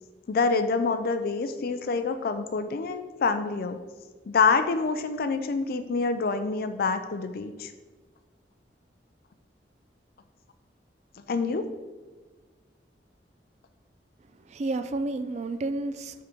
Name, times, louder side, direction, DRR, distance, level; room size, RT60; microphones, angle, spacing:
voice 1, 0.3-3.8 4.3-7.7 11.3-11.6, left 4 dB, 55° left, 9 dB, 0.4 m, -26 dB
voice 2, 14.3-16.2, right 2 dB, 40° right, 10 dB, 0.4 m, -31 dB
8.7 x 3.7 x 4.4 m, 1.3 s
head